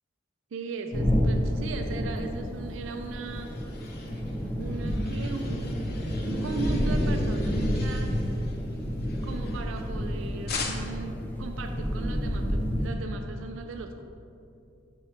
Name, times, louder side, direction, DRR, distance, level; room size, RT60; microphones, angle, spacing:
voice 1, 0.5-3.6 4.6-8.2 9.2-14.0, right 4 dB, 70° right, 6 dB, 0.4 m, -38 dB
sound 1, 0.9-12.9, equal, 10° left, 0.6 m, -29 dB
sound 2, 2.8-10.1 10.5-11.1, left 4 dB, 55° left, 0.7 m, -42 dB
4.5 x 4.4 x 5.8 m, 2.6 s
head